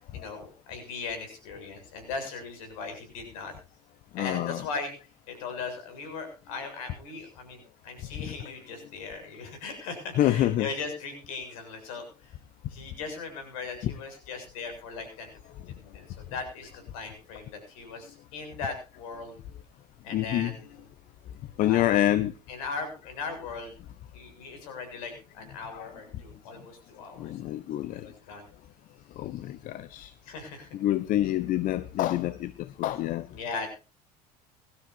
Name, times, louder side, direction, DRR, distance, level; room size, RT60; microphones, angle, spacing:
voice 1, 0.1-3.5 4.2-4.9 5.3-12.3 12.7-15.3 15.7-19.4 20.0-20.9 21.6-22.0 22.5-23.7 24.1-27.3 27.9-28.5 30.2-30.7 33.3-33.7, left 4 dB, 60° left, 7.2 m, -38 dB
voice 2, 4.1-4.7 8.1-8.3 10.2-10.7 13.8-13.9 20.1-20.5 21.6-22.3 25.7-25.9 27.2-28.1 29.2-30.1 30.7-33.3, left 13 dB, 40° left, 1.0 m, -27 dB
23.0 x 13.0 x 2.8 m
figure-of-eight pair, 70°, 20 cm